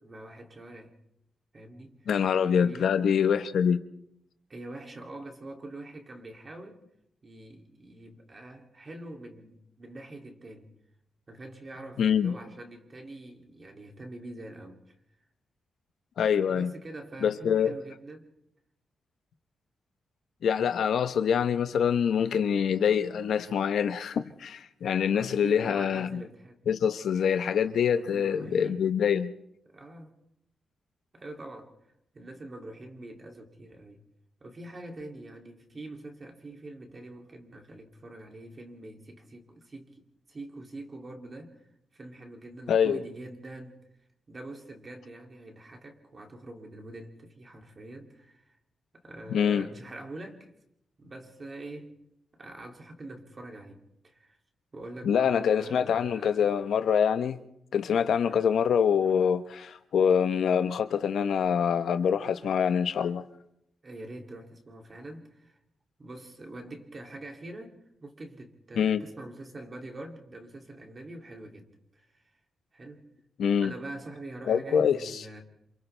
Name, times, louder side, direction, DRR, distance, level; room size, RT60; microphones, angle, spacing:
voice 1, 0.0-1.0 1.5-2.0 2.6-3.1 4.5-6.8 7.2-10.7 11.3-14.9 16.5-18.3 25.1-26.6 28.0-28.8 29.7-30.1 31.1-31.7 32.1-34.0 34.4-41.6 41.9-43.8 44.3-48.6 49.0-50.5 51.0-51.9 52.4-54.4 54.7-56.5 58.2-58.6 63.8-65.6 66.0-67.7 68.0-72.2 72.7-73.1 73.6-75.4, right 2 dB, 30° right, 2.7 m, -44 dB
voice 2, 2.1-3.8 12.0-12.3 16.2-16.7 17.2-17.7 20.4-26.2 26.7-29.3 42.7-43.0 49.3-49.7 55.0-57.4 57.7-63.2 68.8-69.0 73.4-73.7 74.5-75.3, left 7 dB, 75° left, 1.0 m, -25 dB
28.5 x 27.5 x 3.4 m
wide cardioid pair, 145°, 0 cm